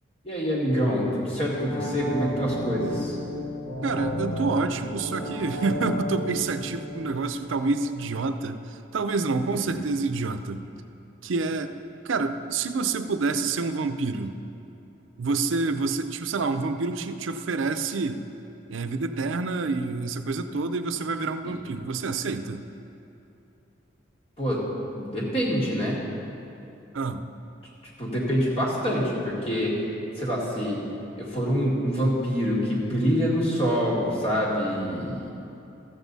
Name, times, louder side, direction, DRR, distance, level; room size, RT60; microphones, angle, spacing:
voice 1, 0.2-3.2 9.5-9.8 21.4-21.5 24.4-24.6 24.9-26.0 28.0-29.8 30.2-30.8 31.2-35.3, equal, 30° left, -5 dB, 2.0 m, -26 dB
sound 1, 1.4-8.2 8.6-8.7, equal, 65° left, 2.2 m, -33 dB
voice 2, 3.8-10.6 11.2-11.7 12.0-14.3 15.2-18.2 18.7-22.7 26.9-27.3, right 3 dB, 80° right, 9 dB, 0.5 m, -28 dB
14.0 x 8.1 x 4.0 m, 2.8 s
head